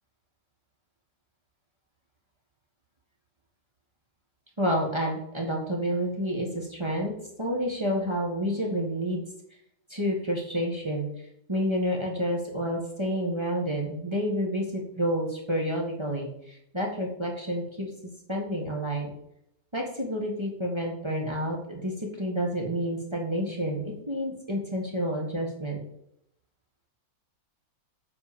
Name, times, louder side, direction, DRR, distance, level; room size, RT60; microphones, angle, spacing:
voice 1, 4.6-7.1 7.4-9.2 9.9-11.0 11.5-17.9 18.3-19.1 19.7-25.8, equal, 20° right, -2 dB, 1.5 m, -29 dB
7.8 x 4.7 x 7.1 m, 0.77 s
omnidirectional pair, 1.6 m